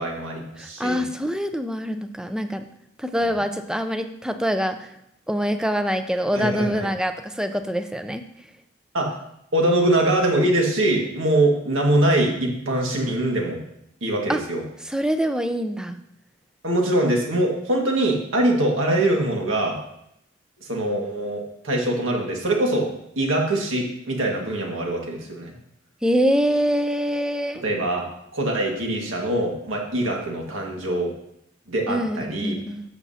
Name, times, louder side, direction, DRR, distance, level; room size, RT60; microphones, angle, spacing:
voice 1, 0.0-1.0 3.3-3.4 6.3-6.9 8.9-9.2 9.5-13.6 14.0-14.6 16.6-19.8 20.6-25.5 27.6-28.1 28.3-31.1 31.7-32.6, right 1 dB, 90° right, 0 dB, 1.8 m, -23 dB
voice 2, 0.6-2.7 3.0-4.9 5.3-8.2 14.3-14.4 14.9-16.0 26.0-27.6 31.9-32.8, equal, 5° right, 8 dB, 0.5 m, -24 dB
11.5 x 7.1 x 2.8 m, 0.77 s
head